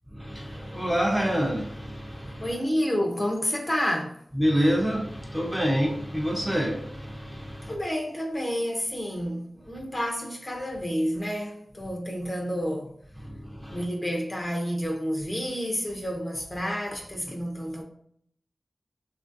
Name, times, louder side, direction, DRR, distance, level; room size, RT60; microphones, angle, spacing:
voice 1, 0.1-2.5 4.4-7.7 13.2-13.8, equal, 5° right, 0.7 m, -27 dB
voice 2, 2.4-4.2 7.6-12.9 13.7-17.8, equal, 30° left, 0.7 m, -29 dB
2.9 x 2.6 x 2.6 m
cardioid pair, 50°, 0 cm